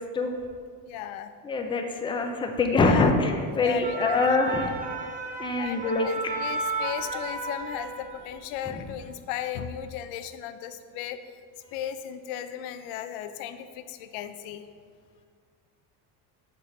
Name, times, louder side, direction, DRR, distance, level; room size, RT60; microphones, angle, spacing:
voice 1, 0.9-1.3 2.7-3.1 3.5-4.3 4.6-4.7 5.6-11.2 11.7-14.7, left 10 dB, 75° left, 10 dB, 0.6 m, -36 dB
voice 2, 1.4-4.7 5.4-6.1 8.7-8.8, left 3 dB, 10° left, 4 dB, 0.4 m, -24 dB
sound 1, 3.6-8.3 8.7-8.9, right 4 dB, 15° right, 0.8 m, -34 dB
6.8 x 3.8 x 4.9 m, 2.1 s
supercardioid pair, 115°, 49 cm